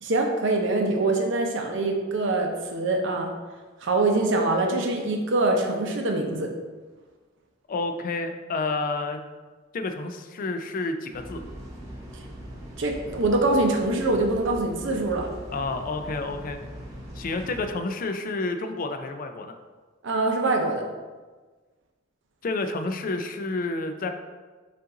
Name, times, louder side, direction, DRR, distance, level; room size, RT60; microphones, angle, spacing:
voice 1, 0.0-3.3 3.8-6.5 12.8-15.3 20.0-20.8, right 2 dB, 65° right, 2 dB, 0.7 m, -24 dB
voice 2, 7.7-9.2 9.7-11.4 15.5-16.6 17.1-19.5 22.4-24.1, left 3 dB, 45° left, 7 dB, 0.4 m, -29 dB
sound 1, 11.1-17.7, equal, 15° right, 1.0 m, -41 dB
5.5 x 2.5 x 3.8 m, 1.3 s
head